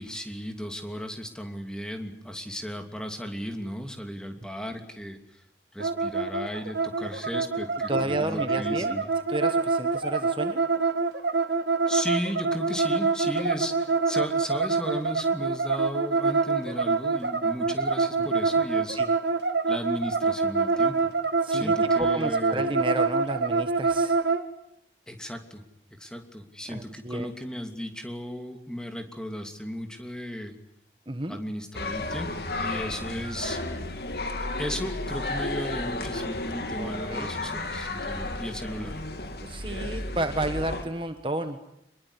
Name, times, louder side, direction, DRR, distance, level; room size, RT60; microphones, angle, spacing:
voice 1, 0.0-5.4 5.7-9.1 11.9-19.0 19.7-21.1 21.5-22.6 25.1-25.6 25.9-30.5 31.3-33.6 34.4-39.0, equal, 5° left, 5 dB, 2.9 m, -35 dB
sound 1, 5.8-24.4, right 4 dB, 85° right, 2.4 m, -26 dB
voice 2, 7.9-9.0 9.3-10.6 18.2-18.3 18.9-19.1 21.4-24.2 26.7-27.3 31.1-31.4 36.8-37.3 39.4-41.6, right 1 dB, 30° right, 8 dB, 1.4 m, -32 dB
sound 2, 31.7-40.8, left 2 dB, 65° left, 3.1 m, -33 dB
26.5 x 22.0 x 9.9 m, 0.77 s
head